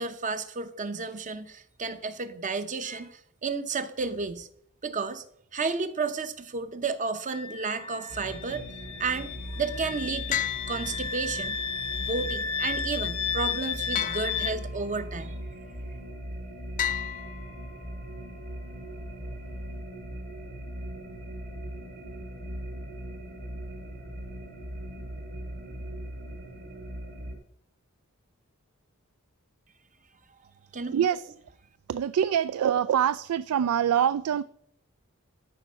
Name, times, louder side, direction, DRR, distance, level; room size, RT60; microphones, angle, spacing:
voice 1, 0.0-4.5 4.8-5.2 5.5-8.6 9.0-10.4 10.7-11.6 12.0-15.4 30.7-31.0, right 4 dB, 35° right, 10 dB, 0.8 m, -32 dB
Wind instrument woodwind instrument, 7.3-14.6, left 7 dB, 65° left, 0.8 m, -33 dB
sound 1, 8.1-27.4, right 1 dB, 55° right, 4.2 m, -39 dB
sound 2, 10.3-11.6 13.9-15.0 16.8-18.0, left 10 dB, 35° left, 0.3 m, -34 dB
voice 2, 30.9-31.3 31.9-34.4, right 9 dB, 85° right, 16 dB, 0.3 m, -25 dB
13.0 x 5.2 x 5.6 m, 0.68 s
head